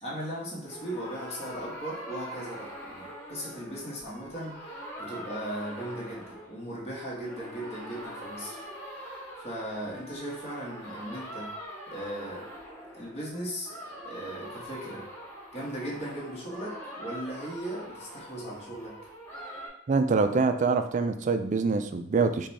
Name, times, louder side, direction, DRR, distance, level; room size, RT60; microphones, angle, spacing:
voice 1, 0.0-11.5 11.9-12.5 13.0-13.7 14.0-15.0 15.5-19.0, right 1 dB, 30° left, -5 dB, 1.4 m, -38 dB
sound 1, 0.6-6.9 7.2-19.7, equal, 10° left, 1.7 m, -43 dB
voice 2, 19.9-22.5, right 4 dB, 40° right, 8 dB, 0.3 m, -25 dB
5.1 x 2.3 x 4.1 m, 0.71 s
head